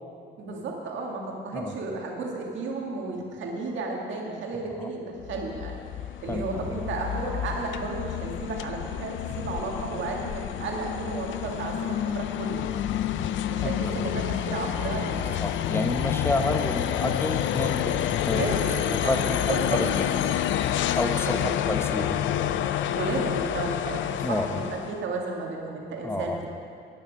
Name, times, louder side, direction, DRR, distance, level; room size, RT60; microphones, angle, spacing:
voice 1, 0.4-5.7 6.2-12.6 13.5-15.4 18.3-19.2 19.4-19.8 21.2-21.5 22.9-26.5, right 3 dB, 70° right, 0 dB, 2.0 m, -33 dB
sound 1, 5.2-25.0, left 11 dB, 75° left, 0.5 m, -29 dB
voice 2, 6.3-6.7 9.3-9.5 12.7-13.1 13.6-14.0 15.4-18.4 18.8-20.6 21.0-22.5 24.2-24.6 26.0-26.4, left 2 dB, 10° left, 6 dB, 0.9 m, -30 dB
11.0 x 9.4 x 5.2 m, 2.5 s
cardioid pair, 90°, 20 cm